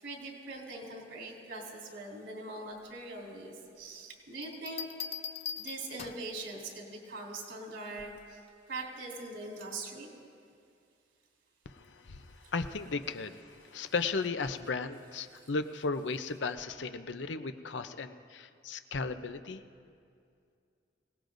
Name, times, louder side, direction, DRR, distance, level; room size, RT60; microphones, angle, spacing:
voice 1, 0.0-4.9 5.5-8.4 8.7-10.1 12.4-12.5 13.8-13.9 15.3-15.5, right 2 dB, 85° right, -1 dB, 3.4 m, -42 dB
sound 1, 4.4-6.4 8.0-8.3, left 8 dB, 35° left, 0.4 m, -41 dB
voice 2, 11.7-19.6, left 4 dB, 75° left, 9 dB, 0.7 m, -35 dB
25.5 x 18.5 x 2.6 m, 2.4 s
head